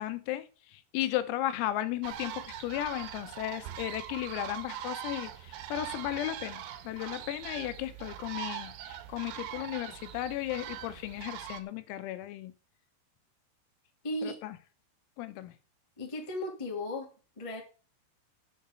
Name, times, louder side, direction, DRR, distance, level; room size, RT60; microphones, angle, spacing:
voice 1, 0.0-12.5 14.2-14.6 15.2-15.5, left 14 dB, 90° left, 11 dB, 3.7 m, -35 dB
sound 1, 2.0-11.6, right 11 dB, 85° right, 3.8 m, -42 dB
voice 2, 14.0-14.4 16.0-17.1 17.3-17.6, left 1 dB, 50° left, 0 dB, 0.3 m, -35 dB
7.9 x 7.3 x 8.2 m, 0.36 s
omnidirectional pair, 5.9 m